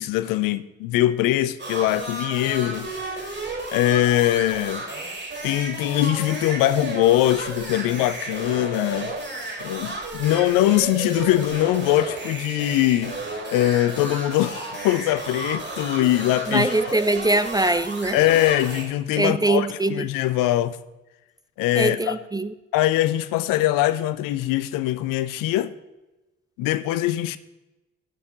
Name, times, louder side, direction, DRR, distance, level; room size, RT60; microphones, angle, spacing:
voice 1, 0.0-3.3 3.7-4.8 5.4-9.1 9.6-13.2 13.5-16.7 18.1-20.8 21.6-22.2 22.7-25.7 26.6-27.4, left 14 dB, 60° left, 0.6 m, -22 dB
sound 1, 1.6-18.8, right 2 dB, 30° right, 4.4 m, -33 dB
voice 2, 16.5-18.2 19.2-20.1 21.8-22.5, right 2 dB, 10° right, 0.4 m, -22 dB
16.5 x 6.5 x 3.8 m
figure-of-eight pair, 40°, 37 cm